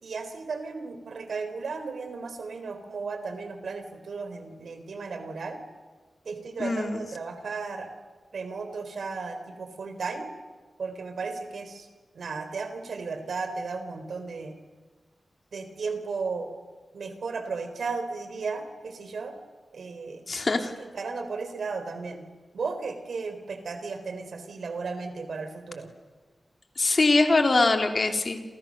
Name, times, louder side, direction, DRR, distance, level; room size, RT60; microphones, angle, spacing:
voice 1, 0.0-5.6 6.2-7.9 8.3-10.3 10.8-11.9 12.1-14.6 15.5-16.5 16.9-19.4 19.7-22.2 22.5-25.9, right 4 dB, 75° right, 8 dB, 4.1 m, -35 dB
voice 2, 6.6-7.0 20.3-20.7 26.8-28.4, left 3 dB, 40° left, 4 dB, 2.8 m, -22 dB
29.5 x 28.0 x 6.6 m, 1.3 s
wide cardioid pair, 150°, 0 cm